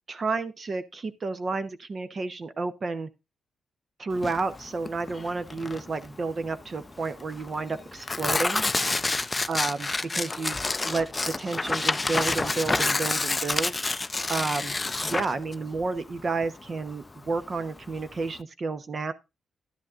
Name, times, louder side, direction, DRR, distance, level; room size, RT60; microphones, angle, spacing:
voice 1, 0.1-3.1 4.0-8.6 9.5-10.6 10.8-13.7 14.3-14.8 15.0-19.1, right 3 dB, 40° right, 0.9 m, -31 dB
Tearing, 4.1-18.4, left 3 dB, 20° left, 0.5 m, -29 dB
11.5 x 10.5 x 2.5 m
cardioid pair, 90°, 0 cm